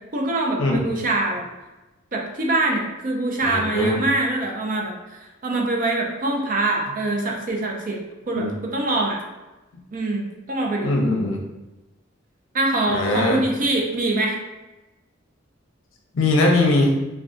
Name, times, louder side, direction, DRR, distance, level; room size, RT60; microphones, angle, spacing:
voice 1, 0.1-1.4 2.1-5.0 5.4-8.0 8.3-9.2 9.9-10.9 12.5-14.4, right 2 dB, 40° right, 0 dB, 0.5 m, -24 dB
voice 2, 3.4-4.0 8.4-8.5 10.8-11.4 12.9-13.4 16.1-17.0, left 2 dB, 70° left, 0 dB, 0.6 m, -20 dB
3.6 x 2.3 x 2.5 m, 1.1 s
head